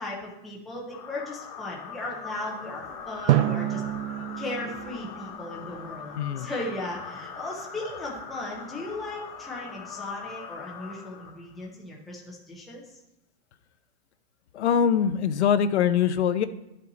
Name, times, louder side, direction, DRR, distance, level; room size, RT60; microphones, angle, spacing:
voice 1, 0.0-3.8 4.4-12.8, left 2 dB, ahead, -4 dB, 0.5 m, -37 dB
sound 1, 0.9-11.7, left 6 dB, 30° left, 1.2 m, -41 dB
Drum, 3.3-6.2, right 13 dB, 85° right, 0.6 m, -28 dB
voice 2, 6.2-6.5 14.6-16.4, left 8 dB, 80° left, 11 dB, 0.8 m, -23 dB
12.0 x 5.5 x 4.0 m, 0.91 s
supercardioid pair, 175°, 33 cm